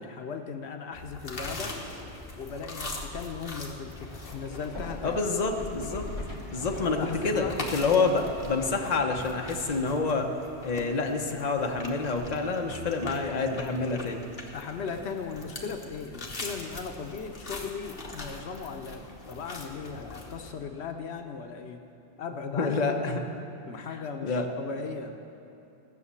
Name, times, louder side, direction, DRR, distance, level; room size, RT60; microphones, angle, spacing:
voice 1, 0.0-1.7 2.4-5.3 6.8-7.6 14.5-21.8 22.2-23.0 23.7-25.2, left 5 dB, 80° left, 5 dB, 1.0 m, -37 dB
sound 1, 0.9-20.5, left 2 dB, 60° left, 1.5 m, -41 dB
sound 2, 4.0-9.8, left 1 dB, 25° left, 2.0 m, -44 dB
voice 2, 5.0-6.1 6.5-7.0 7.2-10.3 10.6-14.2 22.5-23.2 24.2-24.5, left 4 dB, 40° left, 2 dB, 1.0 m, -27 dB
16.0 x 6.5 x 8.3 m, 2.8 s
omnidirectional pair, 1.1 m